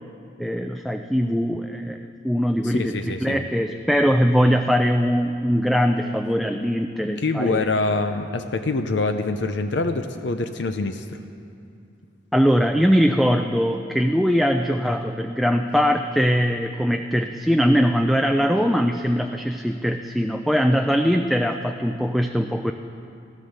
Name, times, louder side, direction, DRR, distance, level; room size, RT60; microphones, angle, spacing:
voice 1, 0.4-7.8 12.3-22.7, equal, ahead, 4 dB, 0.3 m, -21 dB
voice 2, 2.6-3.5 7.2-11.2, left 3 dB, 70° left, 7 dB, 0.6 m, -25 dB
15.0 x 11.5 x 6.6 m, 2.5 s
head